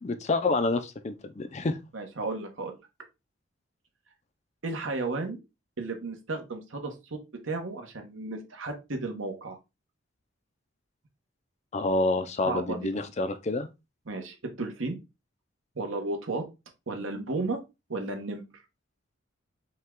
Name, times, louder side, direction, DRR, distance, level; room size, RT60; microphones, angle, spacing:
voice 1, 0.0-1.8 11.7-13.7, left 2 dB, 35° left, 0.5 m, -28 dB
voice 2, 1.9-2.8 4.6-5.4 5.8-9.6 12.4-12.9 14.1-15.0 15.8-16.4 16.9-17.6 17.9-18.4, right 3 dB, 75° right, 1.0 m, -33 dB
5.5 x 2.3 x 3.6 m
head